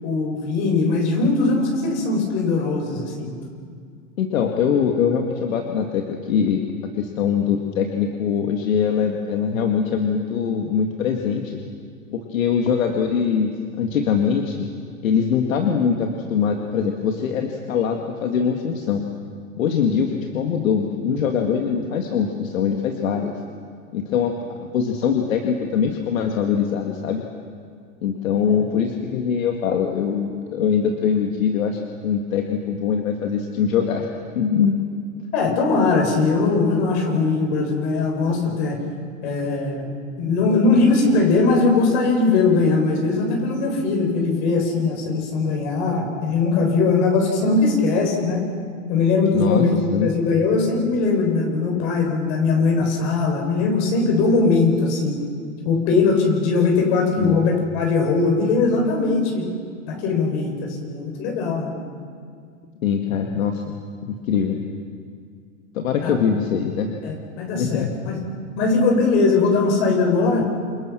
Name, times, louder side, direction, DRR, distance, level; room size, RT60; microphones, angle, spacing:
voice 1, 0.0-3.3 28.5-28.6 35.3-38.8 39.2-39.9 40.2-48.4 48.9-49.7 50.0-55.1 55.6-59.4 59.8-61.7 66.0-66.1 67.0-68.2 68.6-70.5, left 3 dB, 55° left, 1 dB, 7.8 m, -20 dB
voice 2, 4.2-6.7 6.9-11.6 12.1-13.5 13.8-14.7 15.0-19.0 19.6-23.3 23.9-27.2 28.0-34.1 34.4-34.8 49.3-50.1 57.2-57.4 62.8-63.6 64.0-64.6 65.7-66.9 67.6-68.1, left 7 dB, 80° left, 3 dB, 2.2 m, -22 dB
28.0 x 26.0 x 6.2 m, 2.2 s
hypercardioid pair, 125°, 40 cm